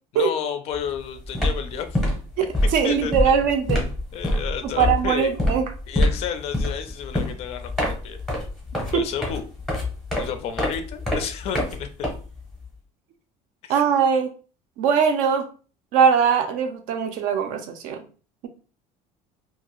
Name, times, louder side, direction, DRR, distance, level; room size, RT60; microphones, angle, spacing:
voice 1, 0.1-2.0 2.8-3.4 4.1-5.3 5.9-8.2 8.9-9.4 10.1-11.9 13.6-13.8, left 8 dB, 40° left, 8 dB, 0.4 m, -31 dB
sound 1, 0.7-1.0 1.2-12.6, left 1 dB, ahead, 0.7 m, -26 dB
voice 2, 2.4-3.9 4.6-5.6 8.9-9.0 13.7-14.3 14.8-15.5 15.9-18.0, right 7 dB, 60° right, 7 dB, 0.5 m, -21 dB
2.6 x 2.4 x 2.9 m, 0.38 s
cardioid pair, 175°, 15 cm